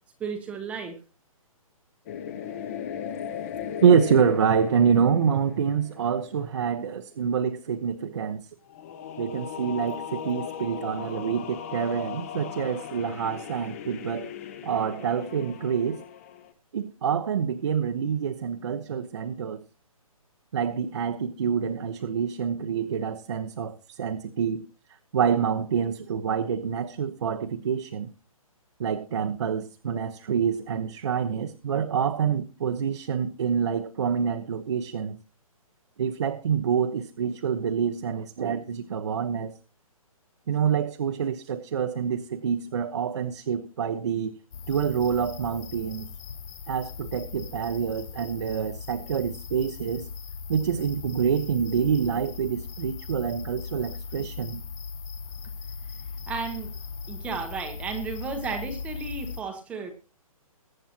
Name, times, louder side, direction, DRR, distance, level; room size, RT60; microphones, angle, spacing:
voice 1, 0.2-1.0 2.3-2.8 56.3-56.7 57.1-59.9, right 5 dB, 5° right, 1.0 m, -34 dB
sound 1, 2.1-6.6 8.7-16.5, left 9 dB, 25° left, 1.0 m, -38 dB
voice 2, 3.8-8.4 9.2-14.3 14.6-16.0 16.7-19.6 20.5-24.6 25.1-28.1 28.8-35.2 36.0-39.5 40.5-44.3 44.7-46.1 46.7-50.1 50.5-54.6, right 7 dB, 50° right, 1.0 m, -26 dB
sound 2, 44.5-59.4, left 5 dB, 50° left, 4.7 m, -39 dB
22.5 x 9.1 x 2.9 m
hypercardioid pair, 170°, 19 cm